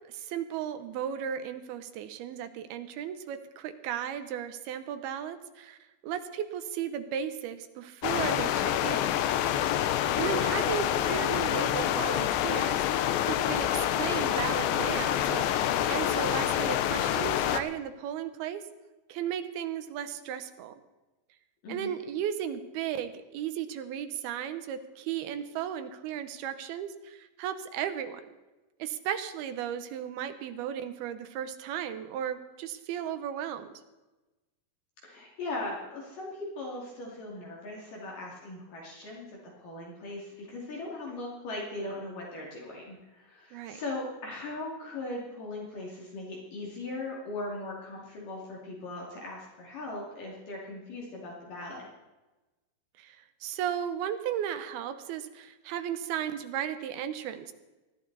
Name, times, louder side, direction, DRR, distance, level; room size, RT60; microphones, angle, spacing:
voice 1, 0.1-5.8 6.0-9.2 10.2-18.6 19.1-20.8 21.7-28.2 28.8-33.8 43.5-43.8 53.0-57.5, right 9 dB, 75° right, 9 dB, 2.6 m, -35 dB
sound 1, 8.0-17.6, left 11 dB, 85° left, 3.1 m, -27 dB
voice 2, 35.0-51.9, left 2 dB, 55° left, -3 dB, 3.9 m, -39 dB
20.0 x 14.0 x 4.1 m, 1.1 s
omnidirectional pair, 5.0 m